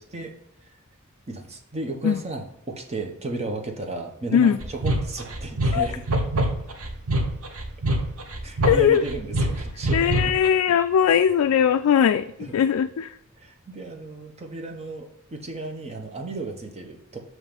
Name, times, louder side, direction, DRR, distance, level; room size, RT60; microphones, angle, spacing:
voice 1, 1.3-6.0 8.4-10.3 12.4-12.5 13.4-17.2, right 2 dB, 30° right, 3 dB, 0.9 m, -34 dB
sound 1, 4.6-10.5, right 1 dB, 75° right, 0.9 m, -25 dB
voice 2, 8.6-9.0 9.9-12.3 12.5-13.1, left 8 dB, 75° left, 9 dB, 0.3 m, -19 dB
7.3 x 3.1 x 5.1 m, 0.79 s
head